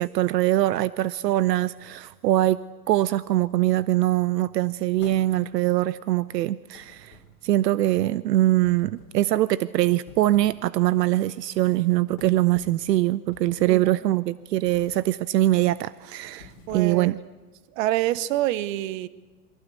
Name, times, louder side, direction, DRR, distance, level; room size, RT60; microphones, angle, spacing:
voice 1, 0.0-2.6 2.9-7.2 7.4-17.1, right 15 dB, 80° right, 18 dB, 0.7 m, -23 dB
sound 1, 5.0-5.7 6.7-7.6 8.6-9.3 9.9-10.7 11.1-11.3 12.2-12.9 13.3-13.9 14.6-15.1 15.5-15.8 16.3-17.2, left 7 dB, 35° left, 2.8 m, -49 dB
voice 2, 13.7-14.0 16.7-17.2 17.8-19.1, right 14 dB, 55° right, 18 dB, 1.0 m, -26 dB
23.0 x 16.5 x 8.3 m, 1.3 s
hypercardioid pair, 125°, 49 cm